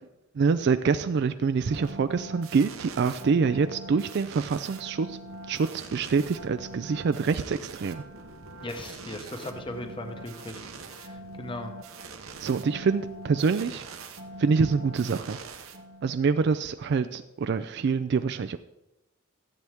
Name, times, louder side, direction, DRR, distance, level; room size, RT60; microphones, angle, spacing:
voice 1, 0.3-5.2 5.5-8.0 12.4-14.0 14.4-15.4 16.0-18.6, right 5 dB, 55° right, 10 dB, 0.4 m, -26 dB
sound 1, 1.7-16.3, right 3 dB, 80° right, 1.0 m, -43 dB
voice 2, 8.6-10.6 10.9-11.7, left 1 dB, 25° left, 6 dB, 0.8 m, -38 dB
14.0 x 7.8 x 3.5 m, 0.90 s
head